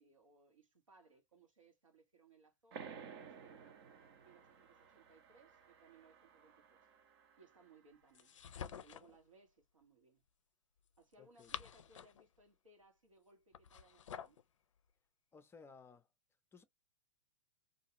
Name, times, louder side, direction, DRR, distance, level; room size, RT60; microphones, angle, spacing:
voice 1, 0.0-3.8 4.2-6.9 7.4-8.4 8.6-10.2 11.0-14.4, right 3 dB, 85° right, 1.3 m, -66 dB
sound 1, 2.7-7.9, right 6 dB, 55° right, 0.8 m, -55 dB
sound 2, 8.1-9.2 11.1-12.3 13.5-14.4, left 8 dB, 75° left, 0.4 m, -49 dB
voice 2, 11.2-11.5 15.3-16.1 16.5-16.6, left 5 dB, 15° left, 0.5 m, -58 dB
2.5 x 2.4 x 2.8 m
figure-of-eight pair, 105°, 16 cm